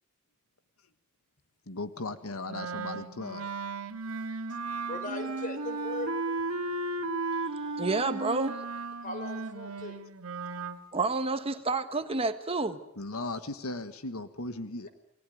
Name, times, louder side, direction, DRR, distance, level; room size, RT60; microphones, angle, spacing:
voice 1, 1.7-3.5 13.0-14.9, left 2 dB, 70° left, 10 dB, 1.5 m, -37 dB
Wind instrument woodwind instrument, 2.5-10.8, right 3 dB, 85° right, 2.1 m, -35 dB
voice 2, 4.9-6.2 9.0-10.0, left 1 dB, 35° left, 8 dB, 4.7 m, -38 dB
voice 3, 7.8-8.6 10.9-12.8, right 3 dB, 25° right, 9 dB, 1.4 m, -29 dB
29.5 x 20.0 x 9.3 m, 0.82 s
head